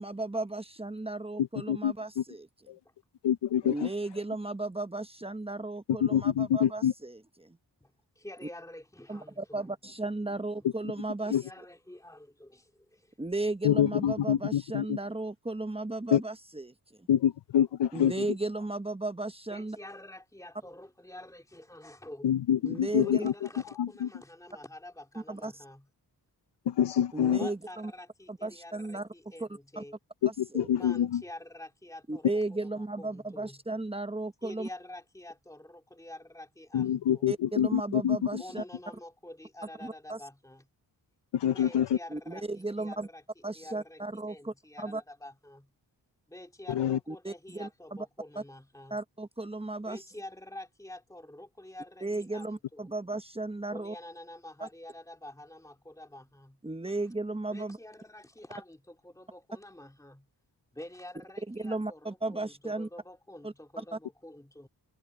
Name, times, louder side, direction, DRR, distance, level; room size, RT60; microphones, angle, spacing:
voice 1, 0.0-2.5 3.6-7.6 9.1-11.4 13.2-16.7 17.9-19.8 22.6-23.3 25.3-25.5 27.1-27.9 28.3-29.1 29.4-29.5 29.8-29.9 30.5-30.7 32.1-34.7 37.3-38.6 39.8-40.2 42.1-43.1 43.4-45.0 47.1-47.7 48.9-50.0 52.0-53.9 54.6-54.7 56.6-57.8 61.5-62.9 63.4-63.5 63.9-64.0, right 2 dB, 15° right, 1.0 m, -35 dB
voice 2, 1.4-2.2 2.7-2.8 3.2-3.9 6.0-6.9 11.3-11.4 13.6-15.0 16.1-16.2 17.1-18.3 22.2-23.3 23.8-24.1 26.7-27.4 30.2-31.2 36.7-38.4 41.3-42.0 46.7-47.0, left 10 dB, 85° left, 0.6 m, -26 dB
voice 3, 7.8-9.7 10.3-10.7 11.2-13.1 15.0-15.1 19.5-22.3 22.9-25.9 27.4-29.9 30.7-33.6 34.4-37.3 38.3-40.7 41.5-43.2 43.5-45.7 46.3-49.0 49.9-52.9 53.7-56.6 56.9-57.1 57.5-60.3 60.7-64.7, left 1 dB, 10° left, 2.9 m, -48 dB
wide cardioid pair, 120°, 41 cm